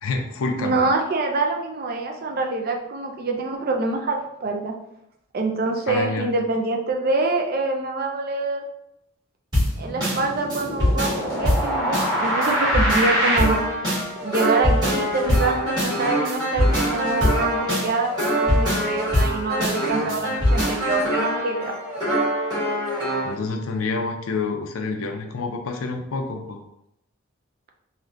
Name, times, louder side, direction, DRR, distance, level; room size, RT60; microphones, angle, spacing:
voice 1, 0.0-0.8 5.9-6.3 20.0-20.3 23.2-26.6, left 3 dB, 85° left, 4 dB, 0.4 m, -28 dB
voice 2, 0.6-4.7 5.3-8.6 9.8-13.6 14.2-21.7, right 3 dB, 45° right, 2 dB, 0.4 m, -25 dB
sound 1, 9.5-23.3, equal, 20° right, 1.5 m, -23 dB
3.4 x 2.6 x 2.5 m, 0.79 s
head